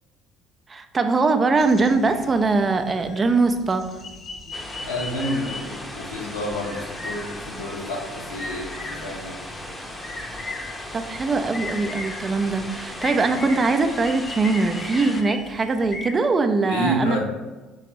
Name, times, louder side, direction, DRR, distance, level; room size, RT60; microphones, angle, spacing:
voice 1, 0.7-4.0 10.9-17.2, right 3 dB, 30° right, 7 dB, 0.4 m, -22 dB
sound 1, 1.6-16.1, left 2 dB, 45° left, 0.7 m, -38 dB
sound 2, 4.5-15.2, left 1 dB, 10° left, 0.7 m, -37 dB
voice 2, 4.8-9.3 16.7-17.2, equal, 80° left, -1 dB, 0.8 m, -29 dB
3.8 x 3.3 x 3.0 m, 1.2 s
hypercardioid pair, 60°, 0 cm